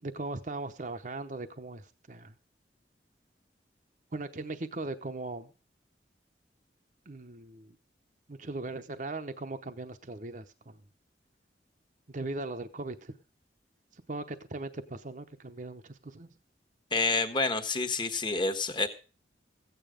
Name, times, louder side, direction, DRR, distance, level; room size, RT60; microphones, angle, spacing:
voice 1, 0.0-2.3 4.1-5.5 7.1-7.8 8.3-10.8 12.1-13.1 13.9-16.3, right 2 dB, 45° right, 7 dB, 0.8 m, -39 dB
voice 2, 16.9-18.9, left 3 dB, 25° left, 9 dB, 1.3 m, -28 dB
15.5 x 9.2 x 5.1 m, 0.36 s
head